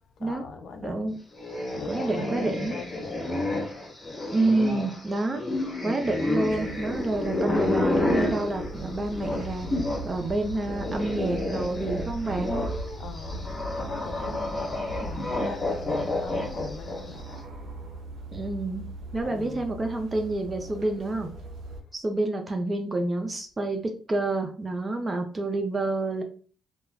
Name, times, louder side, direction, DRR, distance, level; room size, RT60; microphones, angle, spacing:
voice 1, 0.2-1.2 1.7-3.5 9.7-9.9 13.0-17.4 19.2-19.7, left 5 dB, 70° left, 0.5 m, -41 dB
voice 2, 0.8-1.1 1.9-2.8 4.3-5.4 5.8-9.7 10.0-12.5 18.3-18.9 19.1-21.3 21.9-26.2, right 2 dB, 25° right, 0.4 m, -28 dB
sound 1, 1.3-10.1 10.4-17.2, left 1 dB, 20° left, 1.1 m, -30 dB
sound 2, 6.5-21.8, right 2 dB, 80° right, 0.6 m, -39 dB
2.3 x 2.1 x 3.4 m
cardioid pair, 90°, 0 cm